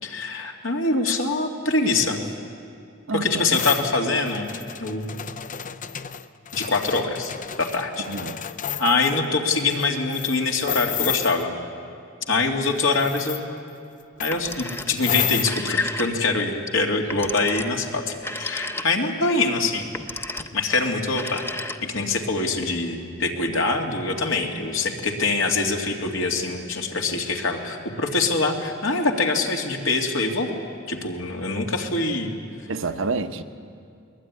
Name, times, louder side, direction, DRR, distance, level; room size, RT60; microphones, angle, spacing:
voice 1, 0.0-2.2 3.1-4.5 4.8-5.1 6.5-7.3 7.6-8.1 8.8-11.5 12.3-13.6 14.2-19.9 20.5-21.4 21.8-30.6 30.9-32.3, left 3 dB, 75° left, 2 dB, 2.6 m, -24 dB
voice 2, 3.1-3.4 8.1-8.4 32.7-33.4, right 3 dB, 70° right, 9 dB, 1.1 m, -28 dB
sound 1, 3.5-9.2 9.7-9.8 10.1-11.4 12.9-13.4 14.2-15.5, left 9 dB, 40° left, 0.6 m, -31 dB
Telephone, 14.2-15.0 15.3-16.4 17.1-19.2 19.8-20.6 21.1-22.1, left 2 dB, 10° left, 0.8 m, -34 dB
22.0 x 21.0 x 9.7 m, 2.4 s
head